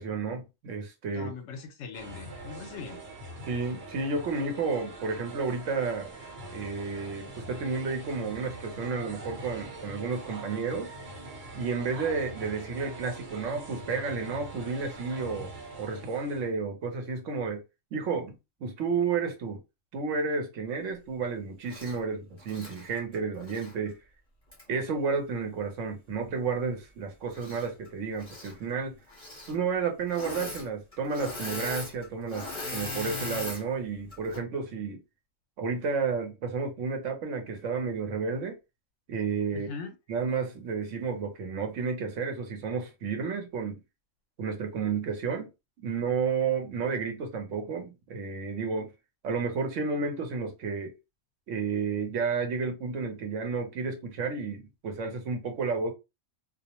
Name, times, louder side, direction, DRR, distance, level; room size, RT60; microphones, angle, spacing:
voice 1, 0.0-1.3 3.5-6.1 6.5-10.9 11.5-15.5 15.8-17.6 17.9-18.3 18.6-19.6 19.9-24.0 24.7-29.0 29.5-35.0 35.6-38.6 39.1-39.7 40.1-43.8 44.4-45.5 45.8-48.9 49.2-50.9 51.5-55.9, right 5 dB, 75° right, 1.0 m, -31 dB
voice 2, 1.1-3.0 39.5-40.0, left 5 dB, 70° left, 0.9 m, -41 dB
sound 1, 1.9-16.5, right 2 dB, 50° right, 1.1 m, -43 dB
Engine / Mechanisms, 21.7-22.0 22.4-23.7 24.5-24.6 27.3-27.9 28.1-28.5 29.1-29.6 30.1-30.7 30.9-33.6 34.1-34.4, left 2 dB, 25° left, 1.1 m, -38 dB
2.4 x 2.0 x 2.8 m
omnidirectional pair, 1.3 m